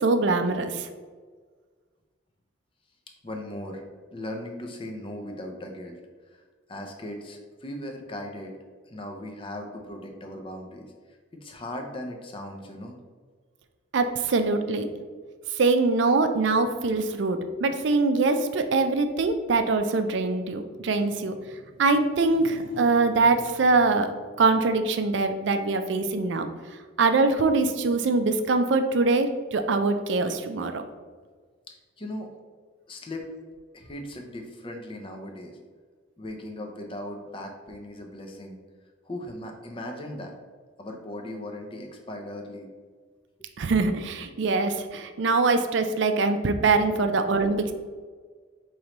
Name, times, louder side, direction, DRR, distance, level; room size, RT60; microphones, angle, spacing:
voice 1, 0.0-0.9 13.9-14.9 15.6-21.3 21.8-24.1 24.4-26.5 27.0-30.8 43.6-47.7, right 3 dB, 70° right, 7 dB, 0.4 m, -23 dB
voice 2, 3.2-3.8 4.1-6.0 6.3-6.4 6.7-8.5 8.9-10.9 11.3-13.0 31.7-32.3 32.9-33.3 33.7-35.6 36.2-38.6 39.1-40.3 40.8-42.7 46.9-47.1, left 1 dB, 25° left, 3 dB, 0.5 m, -38 dB
5.1 x 3.1 x 3.0 m, 1.5 s
head